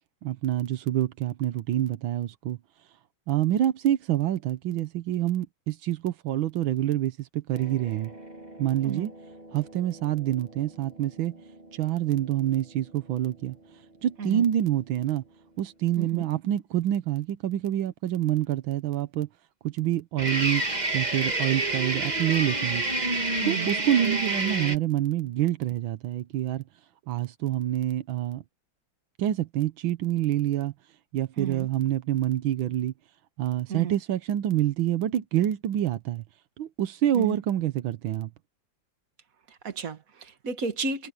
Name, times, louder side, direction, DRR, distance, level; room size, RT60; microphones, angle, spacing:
voice 1, 0.2-2.6 3.3-8.1 8.6-9.1 9.5-11.4 11.7-13.6 14.0-15.2 15.6-19.3 19.6-20.6 20.9-22.8 23.4-26.6 27.1-28.4 29.2-30.7 31.1-32.9 33.4-36.2 36.6-38.3, right 12 dB, 85° right, 1.7 m, -27 dB
sound 1, 7.5-13.2 20.2-24.8, right 2 dB, 20° right, 2.1 m, -31 dB
voice 2, 16.0-16.3 23.4-23.7 31.4-31.7 33.7-34.0 37.1-37.4 39.5-41.1, right 5 dB, 45° right, 2.1 m, -32 dB
omnidirectional pair, 2.1 m